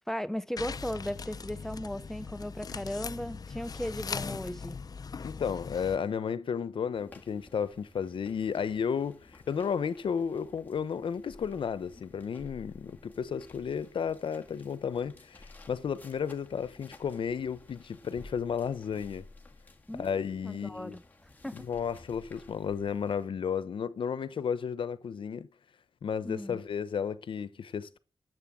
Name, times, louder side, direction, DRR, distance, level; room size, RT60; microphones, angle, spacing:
voice 1, 0.1-4.8 19.9-21.0 21.4-21.7 26.2-26.6, equal, 5° left, 0.7 m, -37 dB
sound 1, 0.6-6.0, left 5 dB, 50° left, 0.6 m, -40 dB
voice 2, 5.2-19.2 20.0-21.0 21.5-25.5 26.0-28.0, left 7 dB, 80° left, 0.9 m, -33 dB
sound 2, 6.9-23.3, left 2 dB, 20° left, 1.9 m, -55 dB
11.0 x 7.8 x 7.4 m
wide cardioid pair, 115°, 9 cm